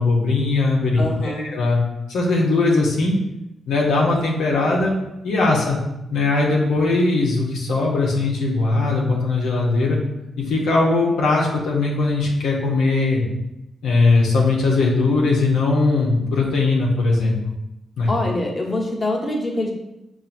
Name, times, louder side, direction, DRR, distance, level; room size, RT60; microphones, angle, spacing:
voice 1, 0.0-1.8 2.1-3.2 3.7-4.9 5.2-5.8 6.1-10.0 10.4-13.2 13.8-17.5 18.0-18.1, left 3 dB, 80° left, -3 dB, 0.7 m, -19 dB
voice 2, 0.9-1.5 18.1-19.7, left 1 dB, 35° left, -2 dB, 1.1 m, -24 dB
5.5 x 2.5 x 2.5 m, 0.91 s
supercardioid pair, 50°, 0 cm